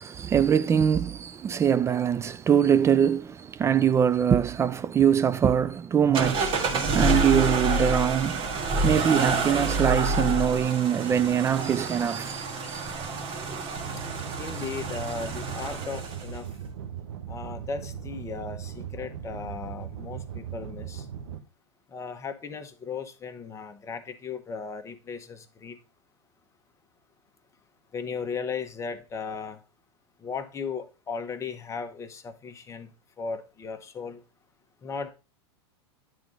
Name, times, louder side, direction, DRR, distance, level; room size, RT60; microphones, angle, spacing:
voice 1, 0.0-8.4 8.8-13.8, right 8 dB, 20° right, 0.3 m, -23 dB
sound 1, 6.1-16.4, right 3 dB, 35° right, 1.7 m, -28 dB
sound 2, 13.8-21.4, right 8 dB, 75° right, 1.2 m, -38 dB
voice 2, 14.4-16.5 17.3-21.0 21.9-25.8 27.9-29.6 30.2-32.9 33.2-34.2 34.8-35.1, left 5 dB, 20° left, 1.1 m, -36 dB
9.3 x 3.8 x 5.1 m
hypercardioid pair, 105°, 14 cm